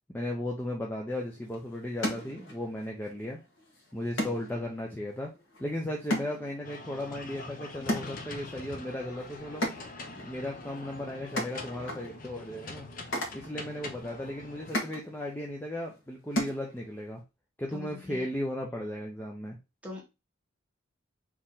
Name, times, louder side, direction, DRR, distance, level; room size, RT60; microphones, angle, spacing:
voice 1, 0.1-3.4 3.9-5.3 5.6-9.6 10.1-12.9 13.3-17.2 17.6-19.6, left 1 dB, 10° left, -1 dB, 0.6 m, -36 dB
sound 1, 1.1-17.2, left 1 dB, 65° left, 1.5 m, -39 dB
sound 2, 6.6-14.7, left 2 dB, 45° left, 0.8 m, -44 dB
voice 2, 17.7-18.2 19.8-20.0, left 2 dB, 5° right, -1 dB, 1.3 m, -41 dB
4.4 x 3.0 x 3.6 m, 0.26 s
head